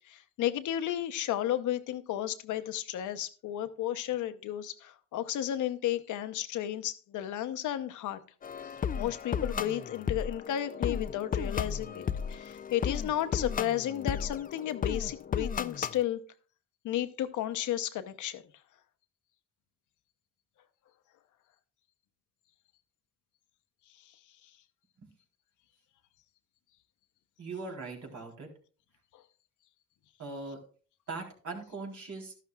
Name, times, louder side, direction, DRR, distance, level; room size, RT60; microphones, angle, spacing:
voice 1, 0.1-8.2 9.0-16.2 16.8-18.4, left 12 dB, 75° left, 10 dB, 0.9 m, -33 dB
sound 1, 8.4-16.0, left 7 dB, 30° left, 0.4 m, -34 dB
voice 2, 27.4-28.5 30.2-30.6 31.1-32.3, right 3 dB, 70° right, 0 dB, 3.7 m, -40 dB
12.5 x 11.5 x 2.3 m, 0.40 s
cardioid pair, 90°, 30 cm